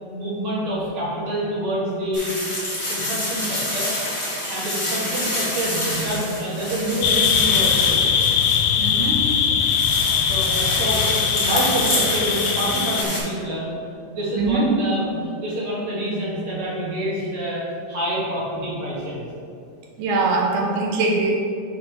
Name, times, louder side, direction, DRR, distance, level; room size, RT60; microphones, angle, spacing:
voice 1, 0.0-2.4 2.6-3.9 4.5-8.3 10.1-13.6 14.0-19.3, right 1 dB, 55° right, -7 dB, 2.1 m, -27 dB
sound 1, 2.1-13.2, left 1 dB, 45° left, 0.4 m, -27 dB
sound 2, 7.0-13.0, left 7 dB, 80° left, 2.0 m, -21 dB
voice 2, 8.8-9.2 14.4-14.7 20.0-21.3, right 3 dB, 75° right, -1 dB, 2.1 m, -22 dB
5.3 x 5.2 x 4.6 m, 2.4 s
omnidirectional pair, 3.6 m